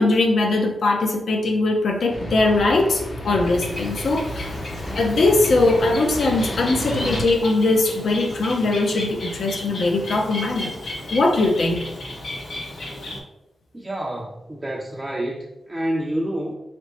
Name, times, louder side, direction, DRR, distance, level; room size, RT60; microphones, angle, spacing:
voice 1, 0.0-4.6 4.9-11.8, left 2 dB, 70° left, 2 dB, 0.7 m, -21 dB
sound 1, 2.1-7.2, equal, 45° left, 0.8 m, -31 dB
Bird, 3.2-13.2, left 1 dB, 85° left, 1.1 m, -34 dB
voice 2, 13.7-16.5, right 1 dB, 15° right, -2 dB, 0.4 m, -28 dB
4.0 x 3.4 x 2.9 m, 0.92 s
wide cardioid pair, 140°, 0 cm